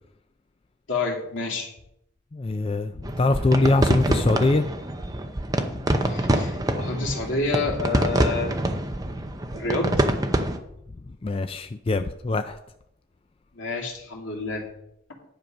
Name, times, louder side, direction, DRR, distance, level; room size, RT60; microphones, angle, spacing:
voice 1, 0.9-1.7 6.1-8.5 9.5-9.9 13.5-14.7, left 3 dB, 80° left, 2.6 m, -28 dB
voice 2, 2.3-4.6 5.7-6.1 6.4-6.5 11.2-12.6, left 2 dB, 30° left, 0.4 m, -23 dB
sound 1, 3.0-10.6, right 1 dB, 20° right, 0.7 m, -25 dB
10.5 x 7.0 x 5.3 m
head